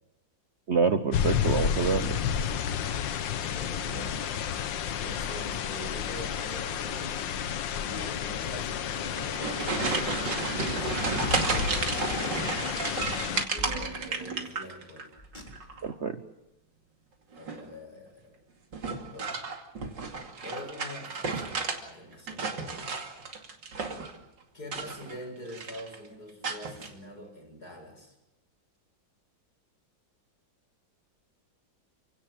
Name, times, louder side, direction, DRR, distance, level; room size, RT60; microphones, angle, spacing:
voice 1, 0.7-2.2 15.8-16.2, right 5 dB, 45° right, 9 dB, 1.0 m, -27 dB
sound 1, 1.1-13.5, left 8 dB, 80° left, 1.7 m, -31 dB
voice 2, 3.4-4.6 5.0-7.3 7.8-12.7 13.1-15.2 17.3-18.4 19.0-19.4 20.4-23.0 24.5-28.1, equal, 55° left, 2 dB, 7.9 m, -44 dB
sound 2, 9.0-15.0 15.3-15.9 17.3-17.7 18.7-21.8 22.1-24.2 24.6-25.2 25.5-26.0 26.4-26.9, right 4 dB, 70° right, 3.2 m, -32 dB
Car, 10.8-11.8 13.0-14.3 15.2-16.0, left 1 dB, 25° left, 4.2 m, -46 dB
29.5 x 17.5 x 7.7 m, 0.97 s
omnidirectional pair, 2.0 m